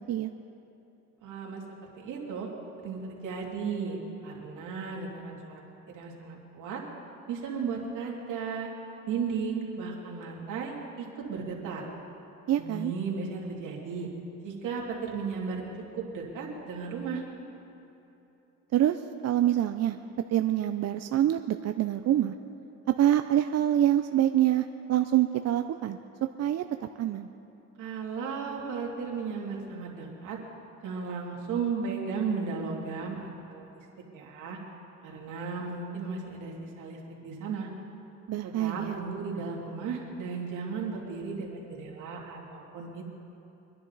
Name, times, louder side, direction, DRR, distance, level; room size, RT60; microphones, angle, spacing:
voice 1, 1.2-1.6 2.0-2.5 2.8-5.6 5.9-6.8 7.3-8.7 9.1-11.8 12.6-14.1 14.4-17.2 27.8-30.4 30.8-33.6 34.1-34.6 35.0-37.7 38.4-43.0, right 5 dB, 90° right, -2 dB, 2.6 m, -35 dB
voice 2, 12.5-12.9 18.7-19.0 19.2-20.0 20.3-22.3 22.9-26.0 26.4-26.6 27.0-27.3 38.3-39.0, right 12 dB, 55° right, 8 dB, 0.5 m, -25 dB
24.5 x 10.5 x 4.0 m, 3.0 s
cardioid pair, 90°, 30 cm